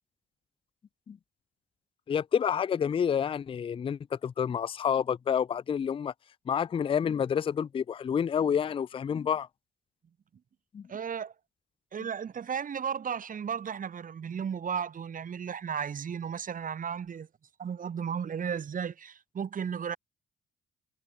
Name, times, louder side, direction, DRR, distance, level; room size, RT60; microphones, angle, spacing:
voice 1, 2.1-6.1 6.5-9.5 10.7-10.8, left 8 dB, 30° left, 0.4 m, -29 dB
voice 2, 10.9-11.3 11.9-17.3 17.6-20.0, right 7 dB, 40° right, 1.3 m, -34 dB
cardioid pair, 90°, 20 cm